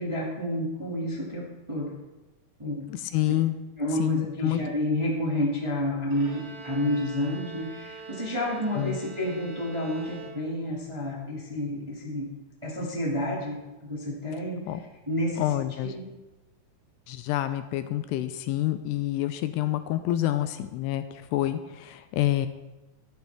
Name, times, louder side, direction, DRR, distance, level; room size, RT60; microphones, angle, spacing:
voice 1, 0.0-1.9 2.6-2.8 3.8-12.3 12.6-14.8 15.0-15.5 15.8-16.0, left 1 dB, 10° right, -4 dB, 1.3 m, -30 dB
voice 2, 2.9-3.6 4.0-4.6 8.8-9.0 14.7-14.8 15.4-15.9 17.1-21.0 21.3-22.5, left 14 dB, 80° left, 10 dB, 2.6 m, -27 dB
Bowed string instrument, 6.1-10.8, right 5 dB, 70° right, 5.2 m, -44 dB
13.0 x 11.5 x 3.6 m, 1.1 s
omnidirectional pair, 4.9 m